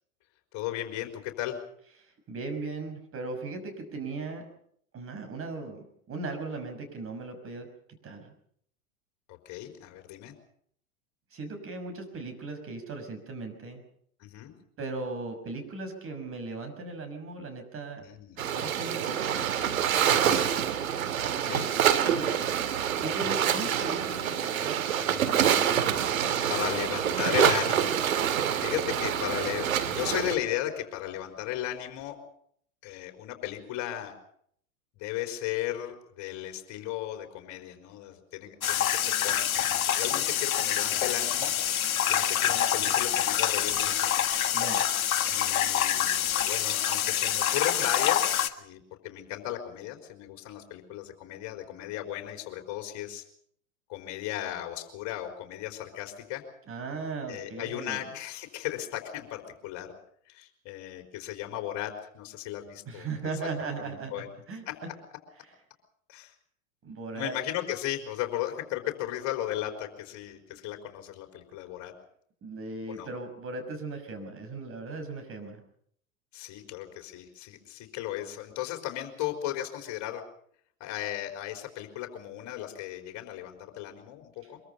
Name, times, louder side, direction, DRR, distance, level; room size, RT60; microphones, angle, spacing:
voice 1, 0.5-1.6 9.3-10.3 14.2-14.5 18.0-18.5 20.1-20.4 21.3-21.7 26.5-28.0 28.3-32.2 32.8-34.1 35.0-41.5 41.8-44.1 45.3-53.2 53.9-56.4 57.3-59.9 60.3-63.1 63.8-64.3 64.7-64.8 66.1-66.3 67.1-71.9 72.9-73.1 76.3-80.2 80.8-84.6, left 13 dB, 40° left, 4 dB, 4.2 m, -36 dB
voice 2, 2.3-4.4 4.9-5.8 6.1-7.7 8.0-8.3 11.3-13.8 14.8-18.0 18.4-19.5 22.2-22.3 23.0-24.8 25.2-26.1 44.5-44.8 56.7-58.0 62.9-64.6 66.8-67.3 72.4-75.6, right 3 dB, 30° right, 6 dB, 6.2 m, -37 dB
sound 1, 18.4-30.3, right 9 dB, 75° right, 2.3 m, -26 dB
sound 2, 38.6-48.5, left 10 dB, 75° left, 1.7 m, -26 dB
23.5 x 23.0 x 5.7 m, 0.66 s
hypercardioid pair, 95°, 42 cm